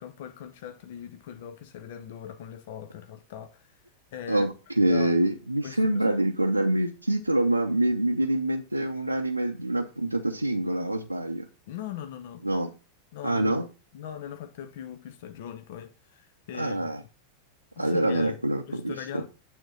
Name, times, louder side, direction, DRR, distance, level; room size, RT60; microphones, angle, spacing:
voice 1, 0.0-3.7 4.1-4.5 4.9-5.1 5.6-6.0 11.7-12.4 13.1-13.5 13.9-16.9 17.8-18.4 18.7-19.3, left 9 dB, 55° left, 0.7 m, -40 dB
voice 2, 4.3-11.5 12.4-12.7 13.2-13.6 16.5-17.0 17.8-19.2, right 1 dB, 85° right, 0.6 m, -26 dB
9.1 x 3.6 x 6.2 m
figure-of-eight pair, 90°, 0 cm